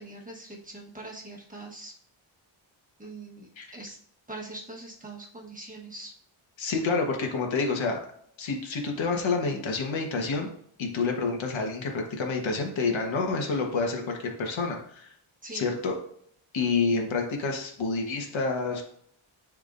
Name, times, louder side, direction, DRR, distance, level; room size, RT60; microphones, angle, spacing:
voice 1, 0.0-1.9 3.0-4.0 4.3-6.1 15.4-15.7, right 2 dB, 15° right, -3 dB, 1.3 m, -42 dB
voice 2, 6.6-8.0 8.4-10.5 10.8-15.1 15.5-16.0 16.5-18.8, left 4 dB, 65° left, 2 dB, 1.4 m, -28 dB
10.0 x 3.7 x 2.6 m, 0.65 s
wide cardioid pair, 130°, 49 cm